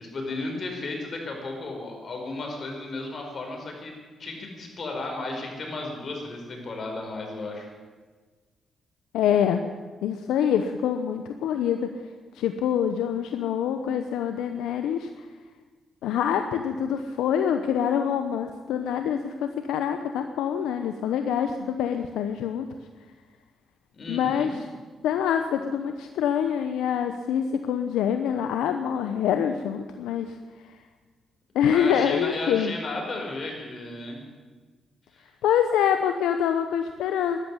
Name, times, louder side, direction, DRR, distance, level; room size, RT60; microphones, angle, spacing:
voice 1, 0.0-3.9 4.2-7.7 23.9-24.6 31.6-34.2 35.1-35.3, left 2 dB, 50° left, 2 dB, 5.2 m, -34 dB
voice 2, 9.1-9.6 10.0-11.9 12.3-15.2 16.0-22.7 24.1-24.5 25.0-30.4 31.5-32.7 35.4-37.4, left 8 dB, 85° left, 7 dB, 0.8 m, -25 dB
12.0 x 12.0 x 9.9 m, 1.4 s
supercardioid pair, 65°, 0 cm